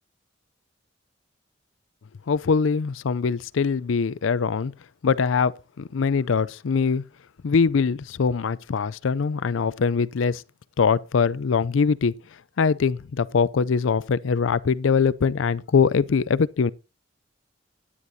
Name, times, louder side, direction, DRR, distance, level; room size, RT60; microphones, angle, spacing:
voice 1, 2.3-4.7 5.0-7.0 7.4-10.4 10.8-12.1 12.6-16.7, left 5 dB, 85° left, 0.5 m, -22 dB
14.0 x 9.9 x 2.7 m
head